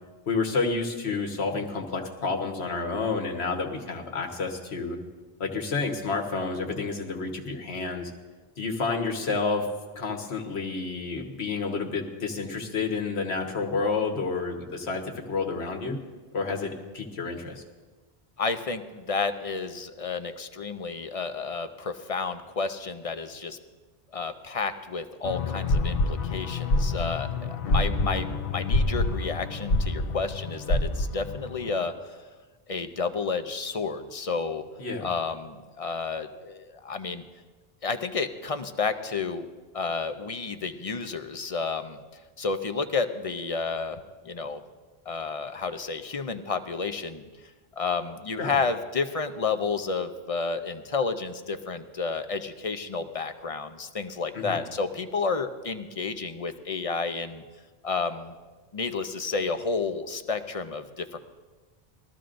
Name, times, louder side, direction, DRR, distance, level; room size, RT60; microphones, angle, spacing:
voice 1, 0.3-5.0 5.4-8.1 8.6-9.7 9.9-16.0 16.3-17.6 34.8-35.1 48.4-48.5 54.3-54.6, left 4 dB, 90° left, 2 dB, 1.6 m, -30 dB
voice 2, 18.4-23.6 24.1-31.9 32.7-34.6 35.0-37.2 37.8-39.5 39.7-42.0 42.4-44.6 45.1-47.3 47.8-57.4 57.8-58.3 58.7-61.2, left 4 dB, 40° left, 9 dB, 0.6 m, -31 dB
sound 1, 25.2-31.8, left 2 dB, 65° left, 0.9 m, -27 dB
21.0 x 13.5 x 2.6 m, 1.3 s
omnidirectional pair, 1.0 m